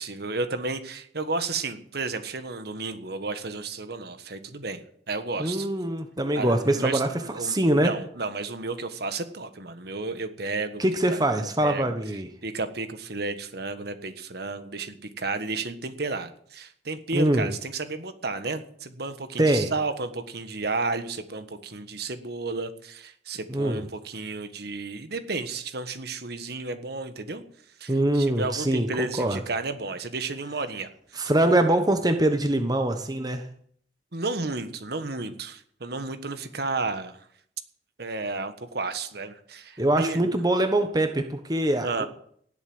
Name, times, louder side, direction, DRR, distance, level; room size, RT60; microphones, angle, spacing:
voice 1, 0.0-5.7 6.3-10.8 11.1-11.2 11.6-11.9 12.4-27.4 27.8-31.2 34.1-37.2 38.0-40.3 41.8-42.1, right 3 dB, 60° right, 10 dB, 1.5 m, -32 dB
voice 2, 5.4-7.1 7.4-7.9 10.8-12.3 17.1-17.5 19.4-19.7 23.5-23.8 27.9-29.4 31.1-33.4 39.8-42.0, right 1 dB, 20° right, 7 dB, 1.1 m, -23 dB
17.5 x 8.2 x 7.9 m, 0.64 s
head